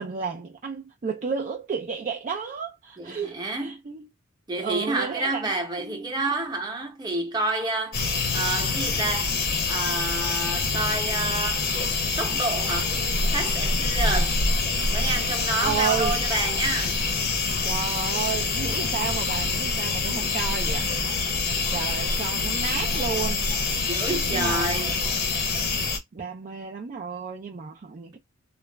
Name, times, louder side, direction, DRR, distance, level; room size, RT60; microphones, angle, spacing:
voice 1, 0.0-4.1 4.6-5.5 5.8-6.1 15.6-16.2 17.6-20.9 21.7-23.5 24.3-24.7 26.1-28.2, right 6 dB, 35° right, 0.4 m, -32 dB
voice 2, 3.0-3.8 4.5-8.1 8.3-9.4 9.7-11.7 12.2-13.0 13.3-14.4 14.9-17.0 21.4-21.8 23.9-25.0, right 2 dB, 20° right, 0.8 m, -29 dB
sound 1, 7.9-26.0, left 3 dB, 50° left, 0.7 m, -26 dB
2.4 x 2.1 x 3.1 m
head